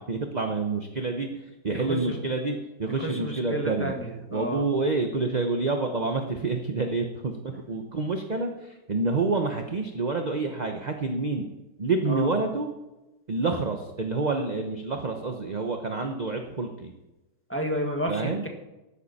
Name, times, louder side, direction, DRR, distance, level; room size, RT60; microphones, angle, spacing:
voice 1, 0.0-1.3 1.6-3.9 4.3-11.4 11.8-12.7 13.3-16.9 18.1-18.4, right 3 dB, 35° right, 4 dB, 0.8 m, -28 dB
voice 2, 2.9-4.6 7.5-7.6 12.1-12.3 17.5-18.5, equal, 5° left, 1 dB, 1.7 m, -31 dB
14.0 x 11.5 x 4.2 m, 1.0 s
omnidirectional pair, 1.9 m